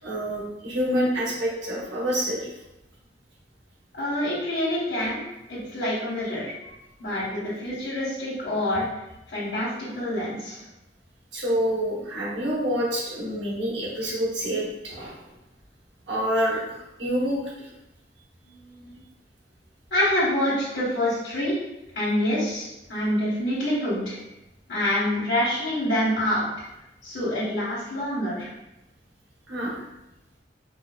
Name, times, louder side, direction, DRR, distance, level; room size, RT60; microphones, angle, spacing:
voice 1, 0.0-2.5 11.3-15.3 16.1-17.7 29.5-29.8, equal, 85° right, -5 dB, 1.2 m, -27 dB
voice 2, 3.9-5.2 5.5-6.5 7.0-8.8 9.3-10.6 18.5-19.0 19.9-21.6 21.9-24.2 24.7-26.5 27.0-28.5, left 1 dB, 80° left, -11 dB, 1.4 m, -26 dB
4.8 x 2.2 x 2.4 m, 0.93 s
head